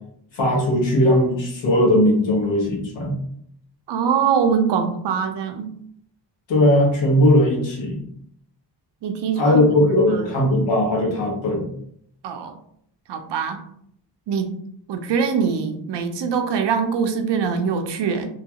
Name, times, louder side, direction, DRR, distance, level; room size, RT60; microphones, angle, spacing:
voice 1, 0.3-3.2 6.5-8.0 9.4-11.7, left 1 dB, 85° left, -2 dB, 1.2 m, -18 dB
voice 2, 3.9-5.7 9.0-10.3 12.2-12.5 13.1-13.6 14.3-14.5 14.9-18.3, right 6 dB, 70° right, 6 dB, 0.5 m, -23 dB
2.9 x 2.3 x 2.8 m, 0.68 s
wide cardioid pair, 175°, 44 cm